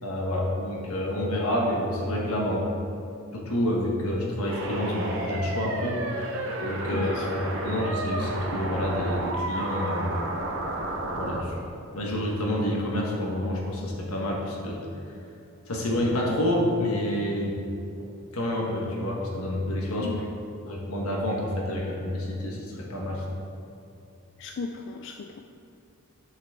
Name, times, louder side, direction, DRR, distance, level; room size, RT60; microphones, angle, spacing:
voice 1, 0.0-2.7 3.3-6.4 6.6-10.2 11.2-11.6 11.9-14.8 15.7-17.6 18.3-20.1 20.6-23.2, left 1 dB, 85° left, -2 dB, 1.3 m, -28 dB
sound 1, 4.5-11.4, right 1 dB, 60° right, 0.7 m, -31 dB
voice 2, 6.9-7.3 20.0-20.3 24.4-25.4, left 4 dB, 55° left, 4 dB, 0.3 m, -36 dB
7.5 x 5.9 x 3.6 m, 2.6 s
head